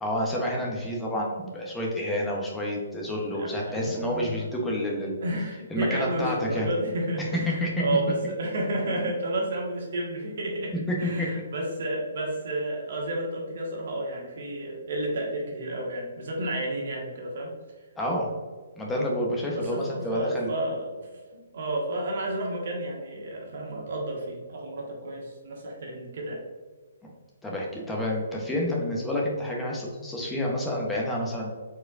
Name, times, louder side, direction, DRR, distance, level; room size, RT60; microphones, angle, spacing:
voice 1, 0.0-5.2 5.7-6.7 7.5-7.7 10.9-11.3 18.0-18.3 18.8-20.5 27.4-31.5, left 1 dB, 10° left, -2 dB, 0.9 m, -29 dB
voice 2, 3.3-4.4 5.2-10.7 11.0-17.5 19.5-21.1 21.3-26.4, right 1 dB, 60° right, -1 dB, 1.4 m, -31 dB
4.4 x 4.3 x 2.5 m, 1.4 s
hypercardioid pair, 140°, 0 cm